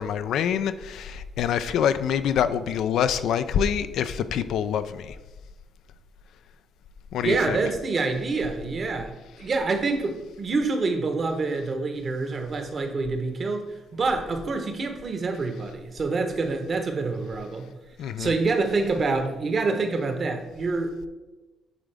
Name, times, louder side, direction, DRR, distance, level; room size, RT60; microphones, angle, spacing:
voice 1, 0.0-5.2 7.1-7.6 18.0-18.3, left 8 dB, 80° left, 12 dB, 0.3 m, -26 dB
voice 2, 7.2-9.1 9.4-17.7 18.2-21.1, right 3 dB, 45° right, 5 dB, 1.0 m, -26 dB
8.9 x 3.6 x 3.4 m, 1.1 s
cardioid pair, 90°, 0 cm